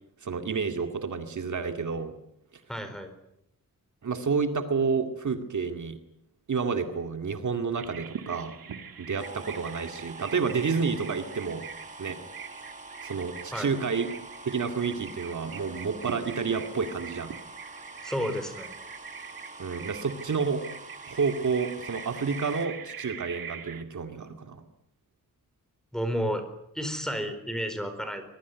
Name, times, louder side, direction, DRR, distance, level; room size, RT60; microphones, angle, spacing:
voice 1, 0.2-2.1 4.0-6.0 6.5-8.5 9.0-11.6 12.0-12.2 13.0-14.1 14.5-17.3 19.6-20.6 21.1-24.6, right 5 dB, 60° right, 7 dB, 2.3 m, -29 dB
voice 2, 2.7-3.1 13.5-13.7 18.0-18.7 25.9-26.4 26.7-28.2, equal, ahead, 8 dB, 4.3 m, -31 dB
Bird vocalization bird call bird song, 7.8-23.8, right 7 dB, 85° right, 2.4 m, -43 dB
sound 1, 9.2-22.7, right 2 dB, 20° right, 2.9 m, -46 dB
24.5 x 22.0 x 9.6 m, 0.77 s
wide cardioid pair, 180°, 34 cm